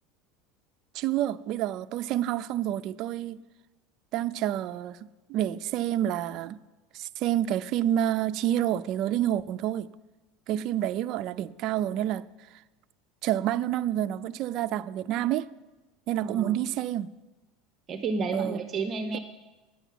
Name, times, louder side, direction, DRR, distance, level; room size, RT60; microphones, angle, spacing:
voice 1, 0.9-3.4 4.1-5.0 5.3-6.6 6.9-9.9 10.5-12.2 13.2-15.5 16.1-17.1 18.3-18.6 19.1-19.2, right 12 dB, 50° right, 0.4 m, -28 dB
voice 2, 16.2-16.6 17.9-19.2, right 4 dB, 30° right, 0.8 m, -31 dB
10.0 x 7.0 x 9.2 m
supercardioid pair, 140°, 0 cm